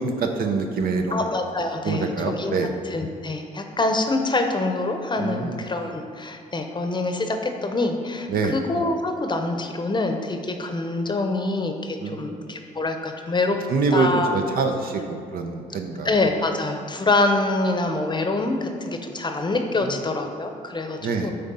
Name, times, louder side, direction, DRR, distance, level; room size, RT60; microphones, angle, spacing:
voice 1, 0.0-1.2 1.8-2.7 5.2-5.6 8.3-8.5 12.0-12.3 13.7-16.1 19.9-20.0 21.0-21.3, right 4 dB, 65° right, 4 dB, 0.6 m, -25 dB
voice 2, 1.1-2.5 2.9-13.6 13.9-14.3 16.0-21.3, left 2 dB, 30° left, 5 dB, 0.7 m, -25 dB
6.6 x 4.2 x 5.4 m, 2.3 s
supercardioid pair, 60°, 16 cm